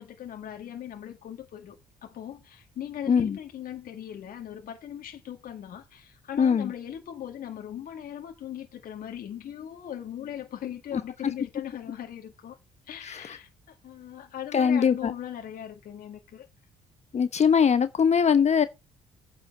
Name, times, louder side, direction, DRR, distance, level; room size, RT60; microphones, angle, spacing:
voice 1, 0.0-12.6 12.9-16.5, left 10 dB, 60° left, 2.0 m, -39 dB
voice 2, 3.1-3.4 6.4-6.7 10.9-11.0 13.0-13.4 14.5-15.1 17.1-18.7, left 7 dB, 45° left, 1.0 m, -22 dB
9.2 x 4.9 x 7.4 m
hypercardioid pair, 60°, 16 cm